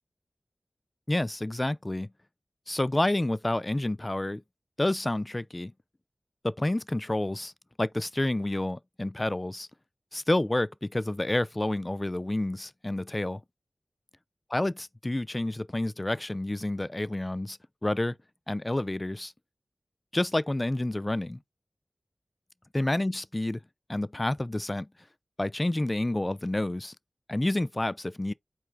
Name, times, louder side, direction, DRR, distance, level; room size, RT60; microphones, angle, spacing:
voice 1, 1.1-2.1 2.7-4.4 4.8-5.7 6.4-7.5 7.8-9.7 10.1-13.4 14.5-18.2 18.5-19.3 20.1-21.4 22.7-23.6 23.9-24.9 25.4-26.9 27.3-28.3, left 1 dB, 30° left, 0.3 m, -29 dB
4.5 x 3.0 x 3.3 m
cardioid pair, 45°, 0 cm